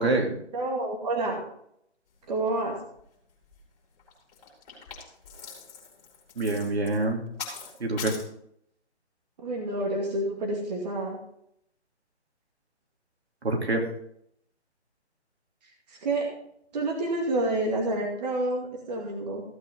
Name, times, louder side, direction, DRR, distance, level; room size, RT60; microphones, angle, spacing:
voice 1, 0.0-0.4 6.4-7.2 7.8-8.1 13.4-13.9, right 2 dB, 65° right, 1 dB, 3.0 m, -26 dB
voice 2, 0.5-1.4 2.3-2.8 9.4-11.2 15.9-16.3 16.7-19.4, right 2 dB, 35° right, 0 dB, 2.4 m, -28 dB
sound 1, 3.0-3.1 3.3-3.6 4.0-8.2, left 5 dB, 35° left, 5.6 m, -41 dB
16.0 x 8.6 x 3.8 m, 0.71 s
figure-of-eight pair, 150°, 35 cm